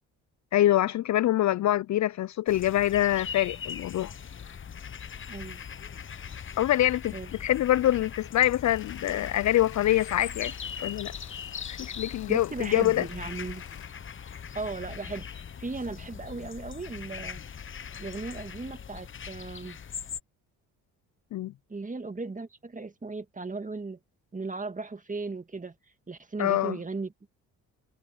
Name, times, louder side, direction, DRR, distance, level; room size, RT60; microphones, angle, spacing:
voice 1, 0.5-4.1 6.6-7.1 7.4-10.5 10.8-11.1 11.7-13.0 21.3-21.5 26.4-26.8, left 13 dB, 50° left, 0.5 m, -25 dB
sound 1, 2.5-20.2, left 7 dB, 30° left, 0.9 m, -40 dB
voice 2, 5.3-5.6 7.1-7.5 12.3-13.6 14.5-17.4 18.0-19.8 21.7-24.0 24.3-25.8 26.1-27.3, right 3 dB, 20° right, 1.9 m, -37 dB
sound 2, 8.6-13.8, left 12 dB, 70° left, 2.5 m, -51 dB
supercardioid pair, 60°, 37 cm